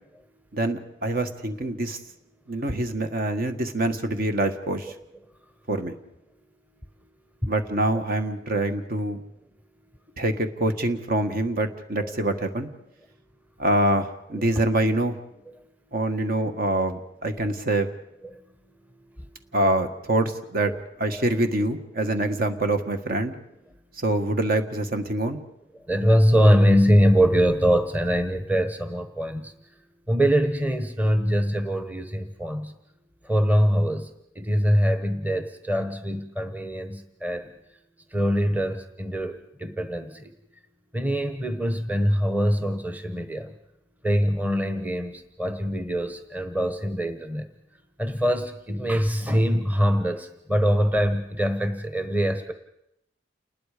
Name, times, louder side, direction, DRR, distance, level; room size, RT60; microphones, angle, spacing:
voice 1, 0.5-2.0 2.5-4.9 5.7-6.0 7.5-9.2 10.2-12.7 13.6-15.1 15.9-17.9 19.5-20.7 21.0-23.3 24.0-25.4, right 1 dB, 50° right, 7 dB, 1.6 m, -25 dB
voice 2, 25.9-29.5 30.1-32.7 33.2-34.1 34.3-37.5 38.1-40.3 40.9-43.5 44.0-47.5 48.0-52.5, equal, 10° right, 7 dB, 1.2 m, -23 dB
29.0 x 20.5 x 5.1 m, 0.80 s
head